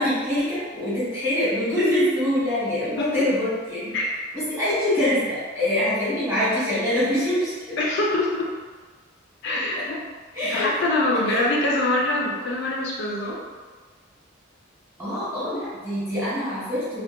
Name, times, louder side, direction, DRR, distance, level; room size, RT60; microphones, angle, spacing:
voice 1, 0.0-3.9 4.3-7.8 10.3-10.7 11.2-11.7 15.0-17.0, left 1 dB, 15° right, -13 dB, 1.3 m, -24 dB
voice 2, 7.8-8.5 9.4-10.0 10.5-13.4, left 2 dB, 60° left, -3 dB, 0.4 m, -24 dB
2.7 x 2.1 x 2.4 m, 1.4 s
head